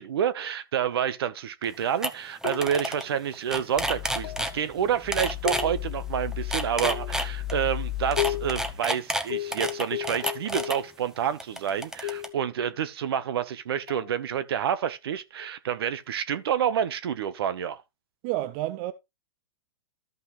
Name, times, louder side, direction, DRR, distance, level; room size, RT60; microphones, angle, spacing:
voice 1, 0.0-17.8, right 9 dB, 70° right, 1.0 m, -28 dB
sound 1, 1.6-1.7 2.0-2.1 2.4-3.0 3.3-4.5 5.1-5.6 6.3-7.5 8.1-10.8 11.4-12.3, right 1 dB, 5° right, 0.8 m, -29 dB
sound 2, 2.4-3.0 4.2-4.6 5.4-6.1 6.8-7.3 8.2-8.6 9.3-10.9 12.0-12.4 13.9-14.1, left 14 dB, 65° left, 0.5 m, -34 dB
sound 3, 3.8-8.7, left 14 dB, 30° left, 1.7 m, -35 dB
voice 2, 18.2-18.9, right 15 dB, 45° right, 0.7 m, -29 dB
13.5 x 5.5 x 3.1 m
hypercardioid pair, 125°, 13 cm